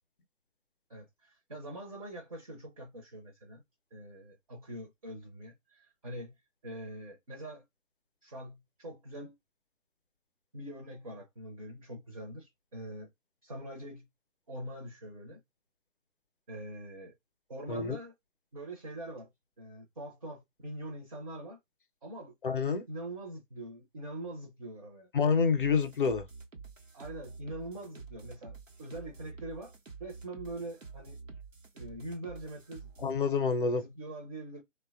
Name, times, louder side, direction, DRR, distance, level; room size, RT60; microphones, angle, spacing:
voice 1, 0.9-3.6 3.9-7.6 8.2-9.4 10.5-13.1 13.4-14.1 14.5-15.4 16.5-17.1 17.5-18.1 18.5-19.3 19.6-21.6 22.0-22.3 22.9-25.1 26.9-29.7 30.0-31.2 31.7-32.9 33.7-34.6, right 1 dB, 30° right, 0.5 m, -43 dB
voice 2, 22.4-22.8 25.1-26.2 33.0-33.8, left 5 dB, 45° left, 0.5 m, -27 dB
sound 1, 25.6-33.2, right 4 dB, 90° right, 0.9 m, -48 dB
2.6 x 2.2 x 2.3 m
figure-of-eight pair, 145°, 37 cm